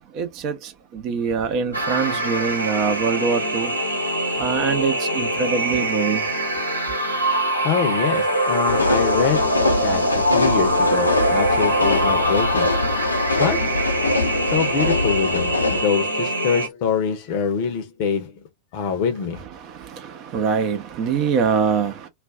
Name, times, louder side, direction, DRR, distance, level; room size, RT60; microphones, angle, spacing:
voice 1, 0.0-3.7 4.4-6.2 19.6-22.1, right 6 dB, 40° right, 0.8 m, -24 dB
sound 1, 1.7-16.7, right 1 dB, 85° right, 1.2 m, -23 dB
voice 2, 7.6-12.8 13.3-13.8 14.5-18.4 18.7-19.4, left 6 dB, 45° left, 0.8 m, -24 dB
sound 2, 8.7-15.8, left 2 dB, 80° left, 0.7 m, -23 dB
2.4 x 2.3 x 3.5 m
figure-of-eight pair, 90°, 0 cm